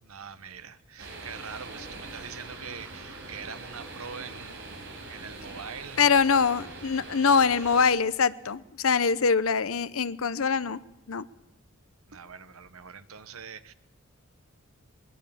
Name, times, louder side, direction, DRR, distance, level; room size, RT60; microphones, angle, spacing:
voice 1, 0.0-6.1 12.1-13.7, right 6 dB, 80° right, 12 dB, 1.2 m, -43 dB
sound 1, 1.0-7.8, right 2 dB, 55° right, 5.6 m, -43 dB
voice 2, 6.0-10.8 11.1-11.2, left 5 dB, 75° left, 16 dB, 0.8 m, -23 dB
21.5 x 20.5 x 7.2 m, 0.96 s
head